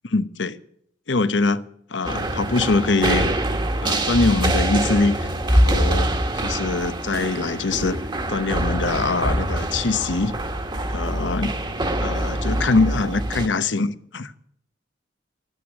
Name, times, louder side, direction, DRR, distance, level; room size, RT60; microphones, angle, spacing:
voice 1, 0.1-0.6 1.1-1.6 1.9-3.3 3.8-6.1 6.4-8.0 8.3-10.4 10.9-11.5 12.0-14.3, left 3 dB, 85° left, 0.9 m, -23 dB
sound 1, 2.0-13.5, right 1 dB, 25° right, 1.4 m, -24 dB
13.5 x 9.2 x 9.6 m
head